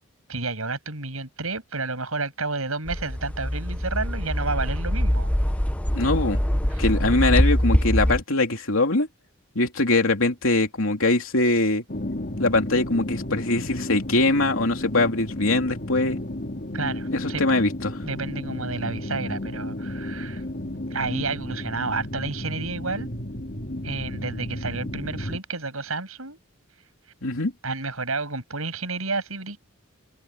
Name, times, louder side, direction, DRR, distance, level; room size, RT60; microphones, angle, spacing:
voice 1, 0.3-5.3 6.7-6.8 16.7-17.6 18.0-20.4 20.9-23.1 23.8-26.4 27.6-29.6, right 3 dB, 85° right, 7.6 m, -30 dB
sound 1, 2.9-8.2, equal, 5° left, 0.7 m, -23 dB
voice 2, 5.9-6.4 6.8-9.1 9.5-11.8 12.4-16.2 17.1-18.0 27.2-27.5, left 2 dB, 70° left, 3.5 m, -22 dB
sound 2, 11.9-25.4, left 1 dB, 45° left, 3.8 m, -33 dB
head